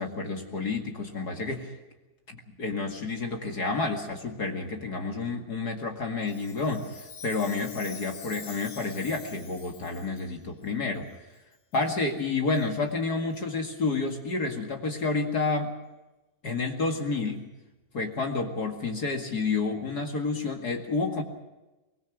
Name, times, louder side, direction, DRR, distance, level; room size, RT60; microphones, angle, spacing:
voice 1, 0.0-1.8 2.3-11.1 11.7-15.7 16.4-17.4 17.9-21.2, left 3 dB, 35° left, 3 dB, 1.8 m, -30 dB
Chime, 6.2-10.3 11.0-11.1 11.7-11.9 12.5-12.7 13.3-13.4 14.1-14.2 14.9-15.0, left 5 dB, 85° left, 5.4 m, -46 dB
24.5 x 21.0 x 6.2 m, 1.1 s
omnidirectional pair, 4.2 m